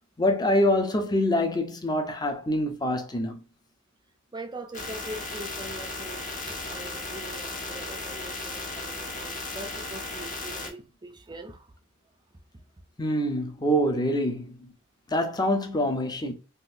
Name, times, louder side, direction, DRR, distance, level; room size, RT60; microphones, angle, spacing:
voice 1, 0.2-3.4 13.0-14.7 15.1-16.3, left 1 dB, 20° left, 0.7 m, -25 dB
voice 2, 4.3-11.7, right 1 dB, 20° right, 0.5 m, -42 dB
sound 1, 4.7-10.7, left 2 dB, 40° left, 1.0 m, -36 dB
3.8 x 2.6 x 2.5 m
head